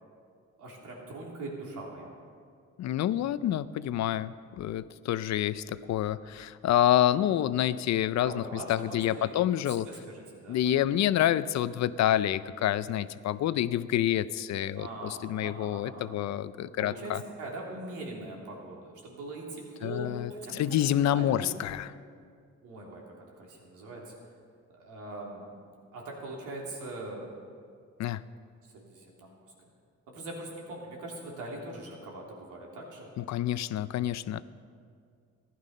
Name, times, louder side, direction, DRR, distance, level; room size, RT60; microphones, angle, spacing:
voice 1, 0.6-2.1 8.2-10.8 14.7-16.2 16.8-17.1 17.4-21.5 22.6-24.1 24.8-25.6 25.9-27.2 28.7-29.4 30.1-33.1, right 2 dB, 85° right, -2 dB, 3.2 m, -42 dB
voice 2, 2.8-9.9 10.5-17.2 19.8-22.0 28.0-28.2 33.2-34.4, left 12 dB, 65° left, 16 dB, 0.5 m, -28 dB
15.5 x 11.0 x 5.4 m, 2.2 s
cardioid pair, 90°, 30 cm